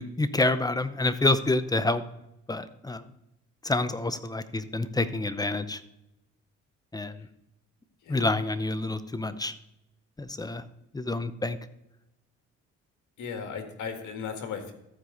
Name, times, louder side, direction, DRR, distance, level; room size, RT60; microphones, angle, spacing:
voice 1, 0.0-2.0 2.5-3.0 3.6-5.8 6.9-7.3 8.1-9.5 10.2-10.6 10.9-11.6, left 2 dB, 15° left, 12 dB, 0.7 m, -28 dB
voice 2, 13.2-14.7, left 6 dB, 75° left, 6 dB, 1.8 m, -36 dB
14.0 x 4.9 x 3.9 m, 0.87 s
cardioid pair, 90°, 30 cm